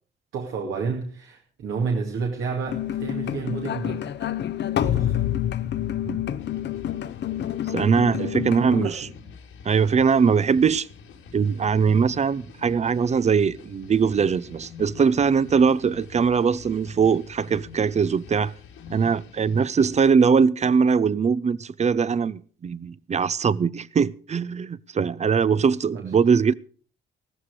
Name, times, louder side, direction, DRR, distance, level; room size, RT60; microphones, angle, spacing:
voice 1, 0.3-4.1 4.8-5.2 8.1-9.0 25.9-26.0, right 5 dB, 80° right, 2.4 m, -30 dB
sound 1, 2.7-8.9, left 11 dB, 60° left, 0.8 m, -28 dB
sound 2, 6.4-20.1, left 6 dB, 85° left, 3.0 m, -45 dB
voice 2, 7.7-9.1 9.6-10.9 11.3-18.5 18.9-26.5, right 6 dB, 35° right, 0.6 m, -21 dB
14.5 x 14.0 x 4.9 m
cardioid pair, 90°, 20 cm